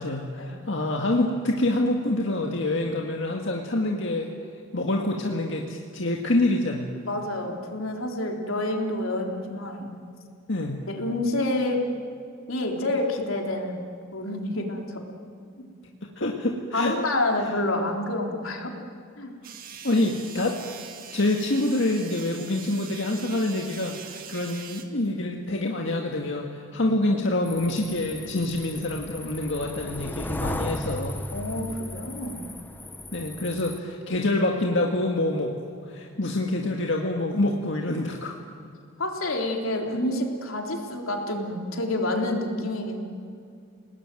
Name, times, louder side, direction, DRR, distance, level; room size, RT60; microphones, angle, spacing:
voice 1, 0.0-4.3 4.7-6.9 10.5-10.8 16.0-16.9 19.8-20.6 21.1-31.2 33.1-35.6 35.8-38.4, left 2 dB, 65° left, 1 dB, 1.9 m, -26 dB
voice 2, 7.1-9.9 10.8-11.8 12.5-15.0 15.6-15.7 16.7-18.7 19.2-19.3 31.3-32.5 39.0-43.0, left 1 dB, 85° left, 1 dB, 3.8 m, -28 dB
sound 1, 19.4-24.8, right 7 dB, 45° right, 2.2 m, -42 dB
sound 2, 27.5-33.8, left 1 dB, 10° left, 0.8 m, -36 dB
29.5 x 19.5 x 9.3 m, 2.4 s
head